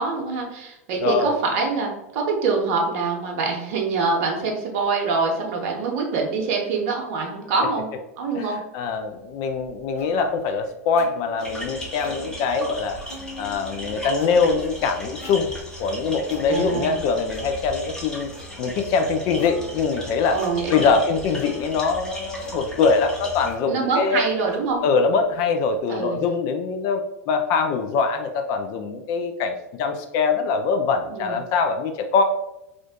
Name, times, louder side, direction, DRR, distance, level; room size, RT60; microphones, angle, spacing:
voice 1, 0.0-7.9 8.2-8.6 16.5-17.0 20.3-20.9 23.7-24.8 25.9-26.2 31.1-31.4, right 4 dB, 55° right, 0 dB, 0.7 m, -25 dB
voice 2, 1.0-1.4 8.3-13.0 13.4-15.5 15.8-18.3 18.6-20.4 20.7-24.2 24.8-27.0 27.3-32.2, left 5 dB, 45° left, 6 dB, 0.4 m, -23 dB
Plucked string instrument, 9.1-25.8, left 2 dB, 80° left, 1.2 m, -44 dB
sound 1, 11.4-23.5, equal, 10° left, 0.8 m, -37 dB
2.5 x 2.4 x 3.5 m, 0.88 s
hypercardioid pair, 95°, 8 cm